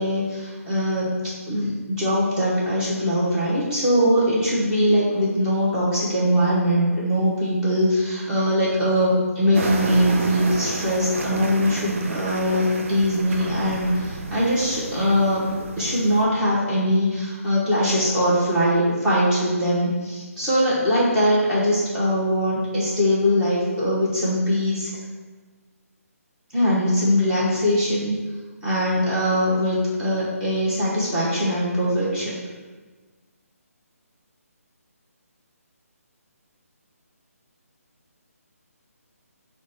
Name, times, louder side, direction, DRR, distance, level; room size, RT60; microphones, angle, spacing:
voice 1, 0.0-15.5 15.8-24.9 26.5-28.2 28.6-32.3, equal, 10° right, -9 dB, 0.9 m, -21 dB
sound 1, 9.5-16.3, right 2 dB, 55° right, 0.5 m, -31 dB
4.8 x 2.2 x 4.2 m, 1.4 s
hypercardioid pair, 160°, 8 cm